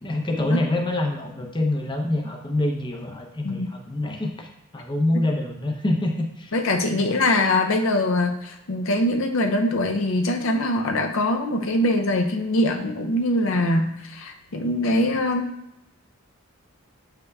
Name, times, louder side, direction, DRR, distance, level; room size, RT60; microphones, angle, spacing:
voice 1, 0.0-6.5 7.0-7.2, left 1 dB, 20° left, 1 dB, 0.6 m, -26 dB
voice 2, 6.5-15.5, left 1 dB, 60° left, 4 dB, 0.5 m, -23 dB
7.8 x 5.6 x 2.3 m, 0.85 s
head